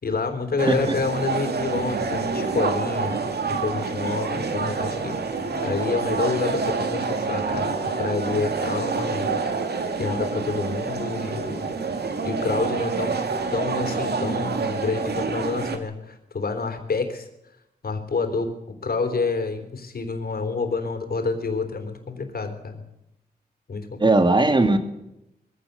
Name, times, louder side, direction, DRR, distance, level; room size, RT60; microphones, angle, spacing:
voice 1, 0.0-5.3 5.6-9.4 10.0-11.7 12.2-13.2 13.5-17.3 17.8-22.8 23.7-24.0, left 4 dB, 65° left, 6 dB, 3.7 m, -28 dB
voice 2, 0.6-1.0 24.0-24.8, right 2 dB, 30° right, 7 dB, 2.3 m, -18 dB
sound 1, 0.6-15.8, right 4 dB, 75° right, 2.3 m, -27 dB
22.5 x 16.0 x 8.2 m, 0.86 s
wide cardioid pair, 135°, 17 cm